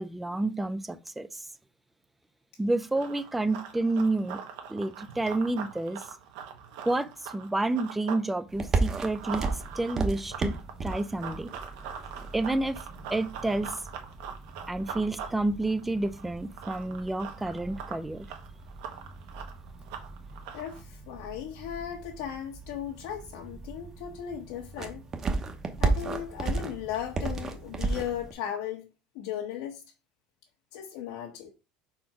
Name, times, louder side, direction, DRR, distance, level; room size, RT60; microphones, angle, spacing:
voice 1, 0.0-1.5 2.6-4.4 4.7-6.0 6.9-9.5 9.8-11.5 12.3-12.8 13.1-13.8 14.7-18.3, right 2 dB, 5° right, 0.4 m, -29 dB
Run, 2.8-8.3 8.6-20.8, right 7 dB, 75° right, 1.3 m, -42 dB
sound 1, 8.5-28.3, right 3 dB, 20° right, 0.9 m, -35 dB
voice 2, 20.5-25.0 25.8-28.9 29.1-29.8 30.7-31.5, left 10 dB, 80° left, 1.2 m, -36 dB
4.4 x 4.4 x 5.8 m
cardioid pair, 165°, 2 cm